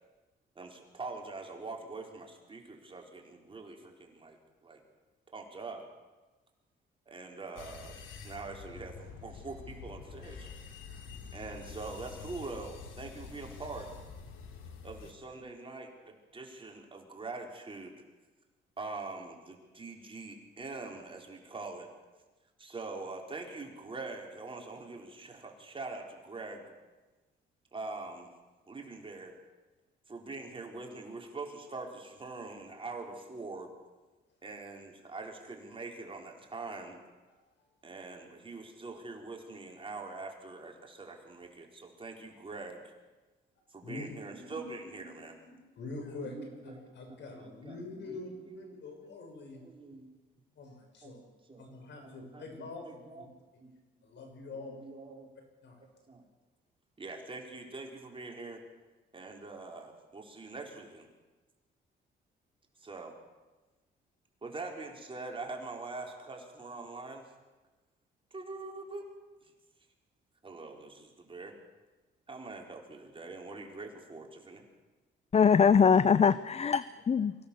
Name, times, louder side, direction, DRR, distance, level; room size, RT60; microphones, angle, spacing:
voice 1, 0.6-4.8 5.3-5.9 7.1-10.5 11.3-13.9 14.8-18.0 18.8-21.9 22.6-26.7 27.7-28.3 28.7-29.4 30.1-33.7 34.4-37.0 37.8-42.9 43.7-45.3 46.2-46.8 47.1-48.7 49.0-49.1 49.5-50.1 51.0-51.2 51.5-51.7 52.0-53.3 53.6-53.7 54.6-55.3 56.1-56.2 57.0-58.6 59.1-61.1 62.8-63.2 64.4-67.2 68.3-69.1 70.4-71.6 72.3-74.6, right 3 dB, 25° right, 1 dB, 4.2 m, -44 dB
sound 1, 7.6-15.1, left 5 dB, 85° left, 2.6 m, -47 dB
voice 2, 45.4-46.4 46.6-49.6 50.6-51.2 51.6-53.2 54.0-54.8 55.6-55.8, left 3 dB, 65° left, 3 dB, 6.3 m, -45 dB
voice 3, 75.3-77.3, left 6 dB, 35° left, 16 dB, 0.6 m, -23 dB
24.0 x 16.5 x 7.0 m, 1.2 s
cardioid pair, 90°, 20 cm